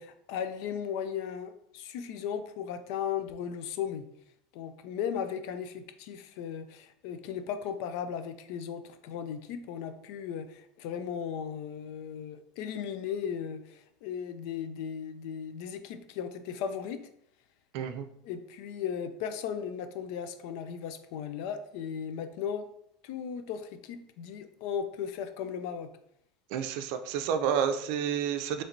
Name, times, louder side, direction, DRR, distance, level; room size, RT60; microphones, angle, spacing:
voice 1, 0.0-4.0 4.5-17.1 18.2-22.7 23.0-25.9, left 8 dB, 65° left, 10 dB, 0.4 m, -36 dB
voice 2, 17.7-18.1 26.5-28.6, right 8 dB, 65° right, 8 dB, 0.4 m, -30 dB
4.3 x 3.1 x 2.6 m, 0.73 s
supercardioid pair, 125°, 3 cm